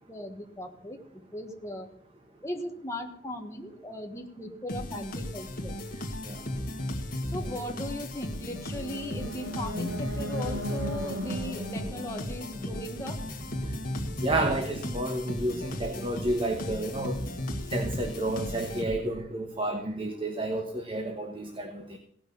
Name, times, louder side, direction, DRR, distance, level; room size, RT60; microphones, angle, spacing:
voice 1, 0.1-1.0 1.3-1.9 2.4-5.7 7.3-13.2, left 1 dB, 15° left, 2 dB, 1.6 m, -38 dB
sound 1, 4.7-19.3, left 1 dB, 50° left, 1.7 m, -35 dB
sound 2, 8.3-13.4, equal, 85° right, 1.6 m, -38 dB
voice 2, 14.2-17.2 17.7-22.0, right 1 dB, 30° right, 3 dB, 1.2 m, -31 dB
17.5 x 6.0 x 6.9 m, 0.65 s
head